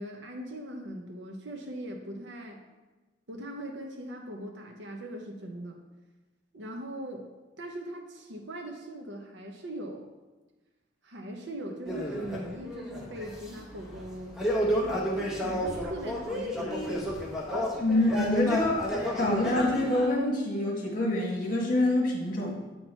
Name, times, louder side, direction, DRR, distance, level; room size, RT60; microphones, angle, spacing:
voice 1, 0.0-2.6 3.3-5.8 6.5-7.3 7.6-10.1 11.0-14.3 14.8-17.2, right 1 dB, 80° right, 2 dB, 0.9 m, -40 dB
sound 1, 11.8-20.1, equal, ahead, 1.2 m, -32 dB
voice 2, 17.8-22.6, left 1 dB, 50° left, -1 dB, 1.7 m, -26 dB
8.3 x 4.4 x 4.4 m, 1.2 s
head